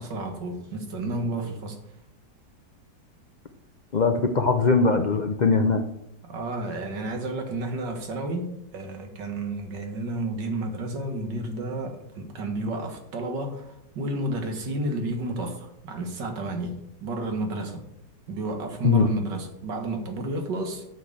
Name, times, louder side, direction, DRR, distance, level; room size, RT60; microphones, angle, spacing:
voice 1, 0.0-1.8 6.2-17.9 18.3-20.9, right 2 dB, 90° right, 2.2 m, -31 dB
voice 2, 3.9-5.8 18.8-19.1, left 4 dB, 85° left, 0.4 m, -21 dB
8.8 x 6.1 x 6.6 m
omnidirectional pair, 1.9 m